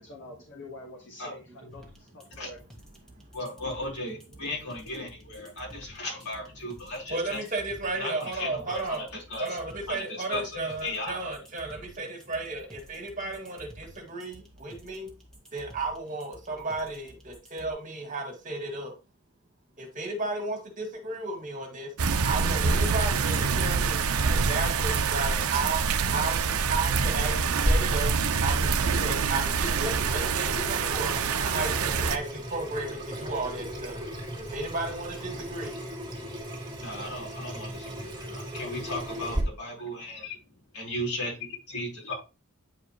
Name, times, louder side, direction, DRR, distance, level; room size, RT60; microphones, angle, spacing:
voice 1, 0.1-2.6, left 2 dB, 60° left, -1 dB, 1.8 m, -46 dB
sound 1, 1.7-17.7, right 1 dB, 5° left, 1.6 m, -51 dB
voice 2, 3.3-7.4 8.0-9.6 9.9-11.3 36.8-40.4 40.7-41.3 41.7-42.1, left 1 dB, 80° left, -3 dB, 4.7 m, -36 dB
voice 3, 7.1-9.1 9.4-15.1 15.5-18.9 19.8-21.9 22.2-25.8 26.1-28.1 28.4-34.1 34.4-35.7, right 3 dB, 35° right, 3 dB, 1.9 m, -34 dB
sound 2, 22.0-32.2, right 5 dB, 80° right, 0.7 m, -26 dB
Water tap faucet / Sink (filling or washing), 27.7-39.4, equal, 20° right, 2.1 m, -35 dB
9.3 x 4.9 x 3.2 m, 0.29 s
head